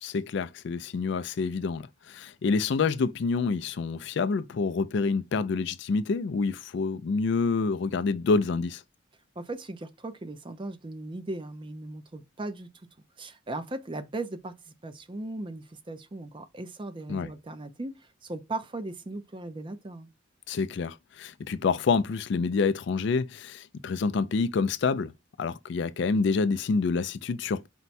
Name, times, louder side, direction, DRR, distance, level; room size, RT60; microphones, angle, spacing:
voice 1, 0.0-8.8 17.1-17.3 20.5-25.1 25.4-27.7, left 4 dB, 60° left, 0.4 m, -27 dB
voice 2, 9.4-12.7 13.2-20.1, right 2 dB, 25° right, 0.5 m, -38 dB
4.5 x 2.2 x 4.1 m
head